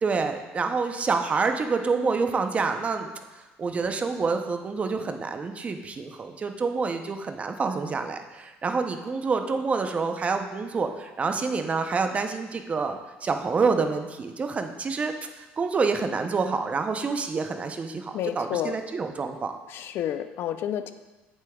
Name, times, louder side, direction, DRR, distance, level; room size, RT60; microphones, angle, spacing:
voice 1, 0.0-3.1 3.6-19.6, right 4 dB, 30° right, 6 dB, 0.6 m, -27 dB
voice 2, 18.1-18.8 19.7-20.9, left 10 dB, 60° left, 11 dB, 0.4 m, -30 dB
8.1 x 7.1 x 2.3 m, 1.2 s
cardioid pair, 100°, 4 cm